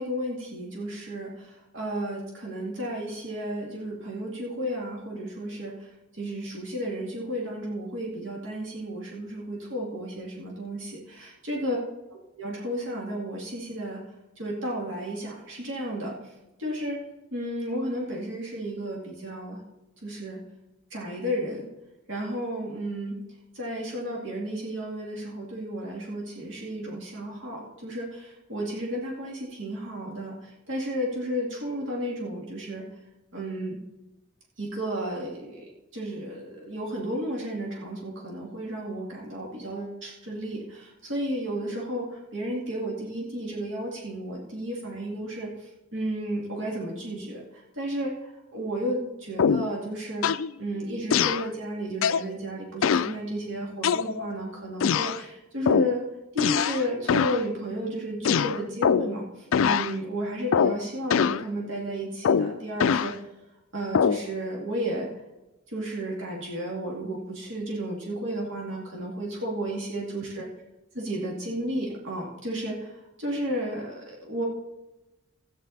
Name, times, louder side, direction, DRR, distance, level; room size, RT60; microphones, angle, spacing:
voice 1, 0.0-5.7 6.2-11.8 12.4-14.0 14.4-16.2 16.6-17.0 17.3-19.6 20.0-20.4 20.9-21.7 22.1-23.2 23.5-32.9 33.3-33.8 34.6-45.5 45.9-50.3 50.6-56.0 56.3-63.2 63.7-65.1 65.7-70.4 70.9-72.9 73.2-74.4, right 1 dB, 70° right, -3 dB, 2.5 m, -33 dB
sound 1, 49.4-49.8 50.2-50.5 51.1-51.5 52.0-52.3 52.8-53.2 53.8-54.4 54.8-55.2 55.7-56.0 56.4-56.8 57.1-57.4 58.2-59.2 59.5-59.9 60.5-60.8 61.1-61.4 62.2-63.1 63.9-64.3, left 7 dB, 85° left, 0.4 m, -23 dB
13.5 x 9.1 x 4.2 m, 0.99 s
head